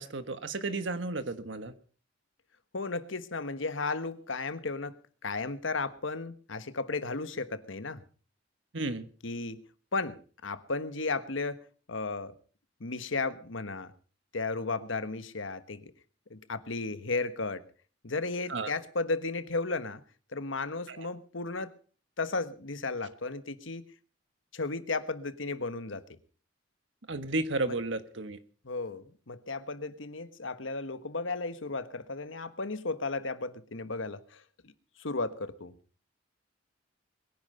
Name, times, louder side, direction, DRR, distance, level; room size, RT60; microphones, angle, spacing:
voice 1, 0.0-1.7 8.7-9.1 18.5-18.7 20.9-21.1 27.1-28.4, right 2 dB, 70° right, 10 dB, 1.5 m, -33 dB
voice 2, 2.7-8.0 9.2-9.6 9.9-12.3 12.8-13.9 14.3-15.9 16.3-17.6 18.0-20.0 20.3-21.7 22.2-23.8 24.5-26.0 27.7-27.8 28.6-34.7 35.0-35.7, left 3 dB, 90° left, 12 dB, 1.4 m, -34 dB
22.0 x 10.5 x 5.6 m, 0.40 s
head